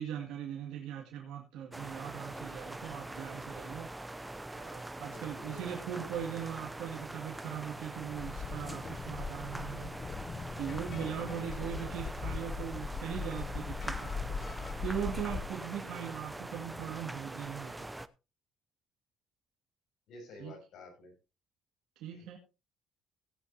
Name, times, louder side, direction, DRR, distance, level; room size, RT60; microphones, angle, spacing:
voice 1, 0.0-3.9 4.5-9.9 10.6-17.9 20.4-20.5 22.0-22.4, right 9 dB, 85° right, -1 dB, 2.2 m, -40 dB
sound 1, 1.7-18.1, right 2 dB, 10° right, 0.5 m, -43 dB
voice 2, 5.1-5.6 11.2-12.1 20.1-21.1 22.1-22.4, left 2 dB, 65° left, 3 dB, 6.2 m, -51 dB
sound 2, 8.0-15.5, left 5 dB, 35° left, 0.7 m, -40 dB
16.5 x 9.3 x 2.8 m, 0.29 s
cardioid pair, 135°, 0 cm